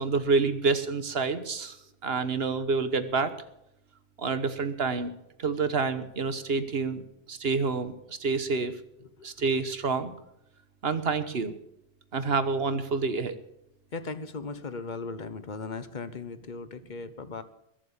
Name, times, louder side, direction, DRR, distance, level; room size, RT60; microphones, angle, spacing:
voice 1, 0.0-1.8 2.0-3.3 4.2-5.1 5.4-7.0 7.3-8.7 9.2-10.1 10.8-11.6 12.1-13.3, right 4 dB, 60° right, 11 dB, 1.4 m, -28 dB
voice 2, 13.9-17.4, left 4 dB, 45° left, 12 dB, 1.1 m, -37 dB
21.5 x 7.6 x 7.2 m, 0.78 s
omnidirectional pair, 1.2 m